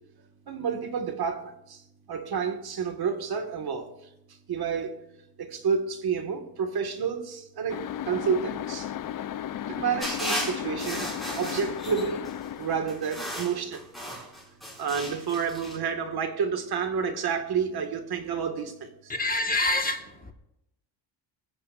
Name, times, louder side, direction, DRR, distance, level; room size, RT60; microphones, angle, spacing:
voice 1, 0.5-1.8 2.1-3.9 4.5-5.0 5.4-8.9 9.7-11.1 11.4-12.3 12.6-13.9 14.8-19.1, right 6 dB, 60° right, 2.0 m, -30 dB
sound 1, 7.7-13.1, left 11 dB, 50° left, 0.6 m, -35 dB
sound 2, 10.0-12.3 12.9-15.8, equal, ahead, 6.0 m, -35 dB
voice 2, 19.1-20.3, left 2 dB, 20° left, 1.6 m, -27 dB
21.0 x 15.0 x 2.6 m
cardioid pair, 125°, 43 cm